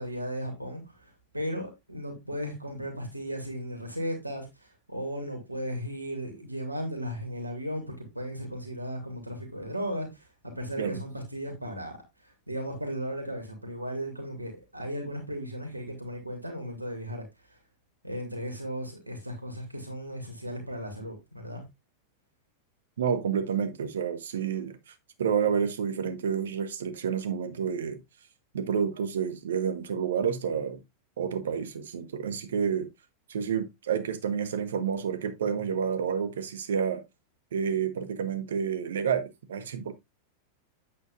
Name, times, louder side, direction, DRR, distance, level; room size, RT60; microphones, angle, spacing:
voice 1, 0.0-11.9 12.5-17.2 18.0-21.6, equal, 85° right, 2.7 m, -36 dB
voice 2, 23.0-28.0 28.5-30.8 31.2-32.9 33.3-37.0 37.5-39.9, right 7 dB, 65° right, 1.3 m, -29 dB
9.2 x 8.3 x 2.5 m
figure-of-eight pair, 90°, 0 cm